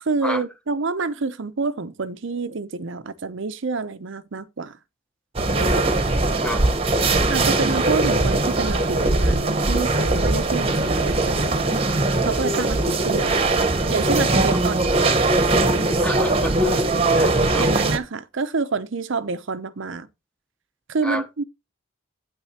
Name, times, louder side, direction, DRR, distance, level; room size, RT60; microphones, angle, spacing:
voice 1, 0.0-4.8 7.3-11.8 12.3-13.5 13.9-14.9 17.6-20.1 20.9-21.4, right 4 dB, 60° right, 0.6 m, -27 dB
sound 1, 5.4-18.0, right 2 dB, 30° right, 1.0 m, -20 dB
voice 2, 6.4-6.8 14.5-14.6 16.0-16.8 17.1-17.7 21.0-21.3, equal, 5° left, 0.9 m, -30 dB
8.9 x 8.9 x 2.8 m
head